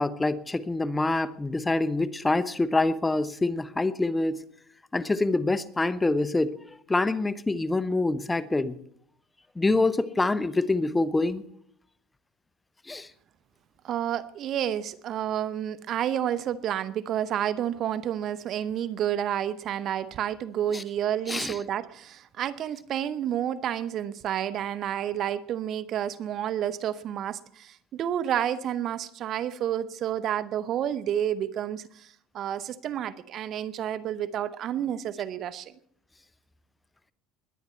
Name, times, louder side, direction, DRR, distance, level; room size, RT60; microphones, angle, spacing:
voice 1, 0.0-4.4 4.9-8.7 9.6-11.4 12.9-13.1 20.7-20.8 21.3-21.5, left 2 dB, 15° left, 0.9 m, -26 dB
voice 2, 13.8-35.7, right 10 dB, 50° right, 0.8 m, -30 dB
21.5 x 9.6 x 4.4 m
supercardioid pair, 90°, 0 cm